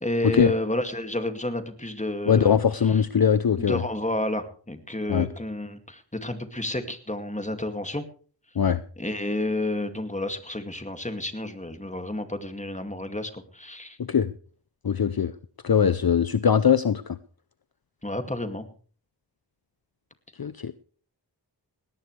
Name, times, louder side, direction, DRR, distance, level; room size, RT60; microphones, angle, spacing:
voice 1, 0.0-2.6 2.8-3.0 3.6-8.0 9.0-14.0 18.0-18.7, left 1 dB, 15° left, 7 dB, 2.3 m, -30 dB
voice 2, 2.3-3.8 5.1-5.3 8.6-8.8 14.1-14.3 14.8-15.3 15.6-17.2 20.4-20.7, left 7 dB, 55° left, 14 dB, 0.7 m, -21 dB
19.5 x 17.5 x 3.3 m, 0.42 s
wide cardioid pair, 60°, 45 cm